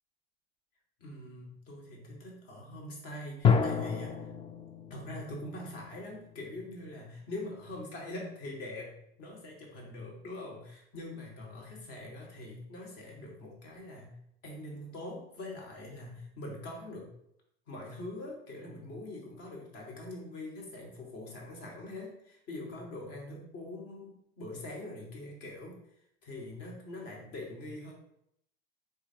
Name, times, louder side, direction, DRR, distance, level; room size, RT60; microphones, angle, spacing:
voice 1, 1.0-4.3 4.9-8.9 9.2-14.2 14.4-17.1 17.7-25.8 26.2-27.9, left 1 dB, 50° left, -1 dB, 1.7 m, -43 dB
sound 1, 3.4-6.9, left 6 dB, 20° left, 0.4 m, -30 dB
4.0 x 2.7 x 4.4 m, 0.75 s
hypercardioid pair, 100°, 30 cm